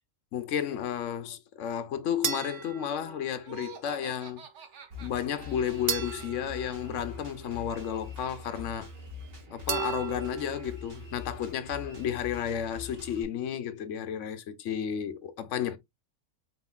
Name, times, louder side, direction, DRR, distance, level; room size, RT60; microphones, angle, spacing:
voice 1, 0.3-4.4 5.0-8.9 9.5-15.8, left 9 dB, 70° left, 1.0 m, -32 dB
sound 1, 2.2-3.7 5.9-7.7 9.7-10.8, right 8 dB, 50° right, 0.7 m, -36 dB
Laughter, 3.4-6.2, right 6 dB, 65° right, 1.2 m, -48 dB
Drum kit, 4.9-13.2, left 3 dB, 90° right, 2.2 m, -44 dB
4.4 x 3.9 x 2.3 m
omnidirectional pair, 1.3 m